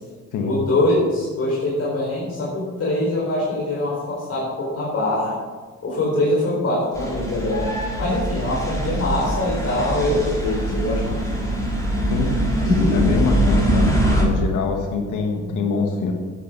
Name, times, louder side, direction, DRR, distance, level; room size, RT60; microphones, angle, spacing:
voice 1, 0.4-5.4 5.8-7.7 8.0-11.2 12.6-13.1, left 1 dB, 50° left, -4 dB, 4.2 m, -23 dB
sound 1, 6.9-14.2, right 1 dB, 10° left, 4.4 m, -23 dB
voice 2, 12.9-16.1, left 4 dB, 80° left, 3 dB, 1.6 m, -24 dB
11.5 x 9.6 x 6.1 m, 1.5 s
cardioid pair, 90°, 30 cm